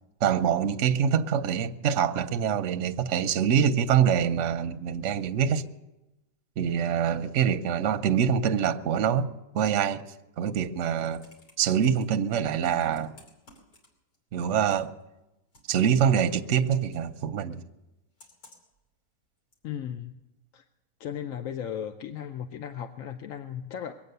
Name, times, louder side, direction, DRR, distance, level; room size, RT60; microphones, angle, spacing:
voice 1, 0.2-5.6 6.6-9.3 9.5-10.0 10.4-11.2 11.6-13.1 14.3-14.9 15.7-17.6, right 8 dB, 55° right, 0.9 m, -25 dB
Computer keyboard, 10.7-12.0 12.6-14.2 14.4-15.0 15.5-17.1 18.2-18.8 19.5-19.6, left 1 dB, 90° left, 3.6 m, -56 dB
voice 2, 19.6-20.2 20.5-20.6 21.0-24.0, left 9 dB, 60° left, 0.9 m, -36 dB
22.5 x 8.6 x 6.7 m
omnidirectional pair, 1.8 m